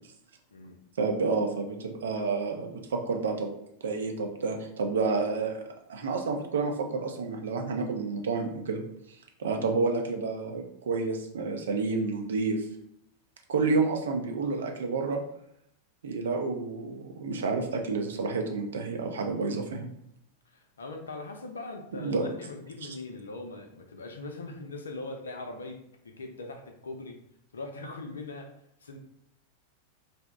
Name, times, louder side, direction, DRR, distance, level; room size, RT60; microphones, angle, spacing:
voice 1, 1.0-3.5 3.8-5.6 5.9-8.8 9.4-12.6 13.5-15.2 16.0-19.9 22.0-22.3 22.8-23.0, right 4 dB, 65° right, 3 dB, 0.5 m, -29 dB
voice 2, 20.5-25.8 26.0-27.2 27.5-28.5 28.8-29.0, left 2 dB, 70° left, 4 dB, 0.5 m, -40 dB
2.7 x 2.1 x 3.5 m, 0.75 s
figure-of-eight pair, 90°, 0 cm